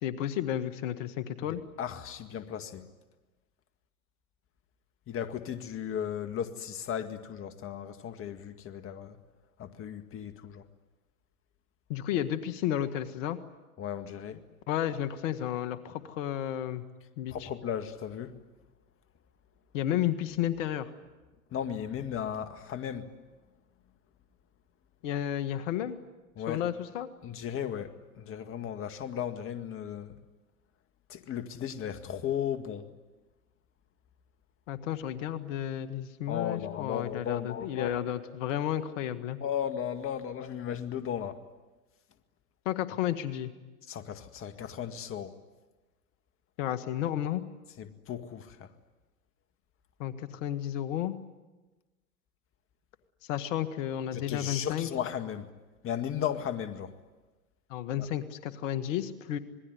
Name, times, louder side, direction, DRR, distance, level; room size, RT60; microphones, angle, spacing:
voice 1, 0.0-1.6 11.9-13.4 14.7-16.8 17.2-17.5 19.7-20.9 25.0-26.0 26.5-27.1 34.7-39.4 42.7-43.5 46.6-47.4 50.0-51.2 53.3-54.9 57.7-59.4, left 11 dB, 60° left, 1.9 m, -32 dB
voice 2, 1.5-2.9 5.1-9.2 9.6-10.6 13.8-14.4 17.3-18.3 21.5-23.1 26.4-26.6 27.2-30.2 31.1-32.9 36.3-38.0 39.4-41.4 43.9-45.3 47.8-48.7 54.1-55.5 55.8-56.9, left 9 dB, 30° left, 1.9 m, -35 dB
27.0 x 21.0 x 9.6 m
hypercardioid pair, 105°, 42 cm